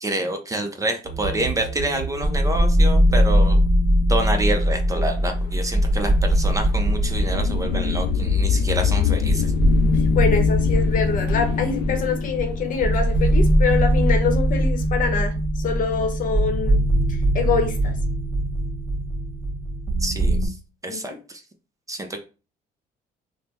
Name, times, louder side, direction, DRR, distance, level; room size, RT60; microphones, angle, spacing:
voice 1, 0.0-3.6 4.1-9.5 20.0-20.6 20.8-21.4 21.9-22.2, right 2 dB, 20° right, 5 dB, 0.6 m, -27 dB
sound 1, 1.1-20.5, equal, ahead, 1.6 m, -21 dB
sound 2, 5.0-14.0, left 8 dB, 85° left, 0.4 m, -26 dB
voice 2, 10.1-16.8 17.1-17.9 20.9-21.2, left 5 dB, 55° left, 6 dB, 0.8 m, -25 dB
3.3 x 2.1 x 4.2 m, 0.34 s
cardioid pair, 110°, 17 cm